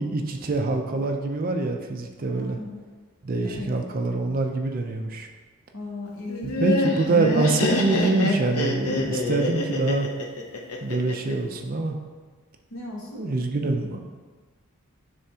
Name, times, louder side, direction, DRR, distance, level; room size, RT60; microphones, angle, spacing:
voice 1, 0.0-2.6 3.2-5.3 6.6-10.1 10.8-12.0 13.2-14.0, right 3 dB, 40° right, 4 dB, 0.5 m, -25 dB
voice 2, 2.3-2.8 3.4-3.7 5.7-7.0 12.7-13.2, left 2 dB, 65° left, -3 dB, 1.4 m, -37 dB
Laughter, 6.3-11.3, left 2 dB, 90° left, 0.7 m, -25 dB
9.7 x 3.4 x 2.8 m, 1.4 s
head